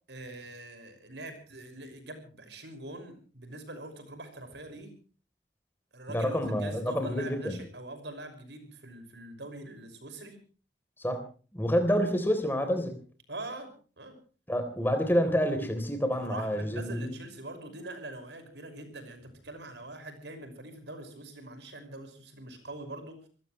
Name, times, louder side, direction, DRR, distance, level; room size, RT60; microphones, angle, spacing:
voice 1, 0.1-4.9 5.9-10.4 13.3-14.1 16.2-23.3, right 2 dB, 80° right, 8 dB, 5.8 m, -43 dB
voice 2, 6.1-7.6 11.0-11.2 11.5-12.9 14.5-17.2, equal, 10° left, 6 dB, 3.6 m, -28 dB
26.0 x 16.5 x 3.2 m, 0.39 s
head